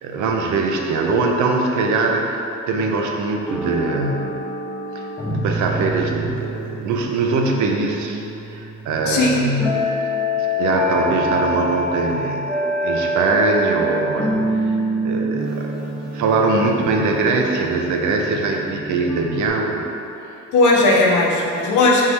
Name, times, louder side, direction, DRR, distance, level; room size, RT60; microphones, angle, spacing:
voice 1, 0.0-4.3 4.9-8.2 8.5-9.9 10.4-14.7 15.0-19.9, right 3 dB, 75° right, 1 dB, 0.6 m, -22 dB
sound 1, 3.5-19.5, equal, 5° right, 0.9 m, -26 dB
voice 2, 9.0-9.4 20.5-22.1, left 2 dB, 75° left, -2 dB, 0.8 m, -16 dB
3.7 x 2.7 x 4.5 m, 2.9 s
cardioid pair, 90°, 30 cm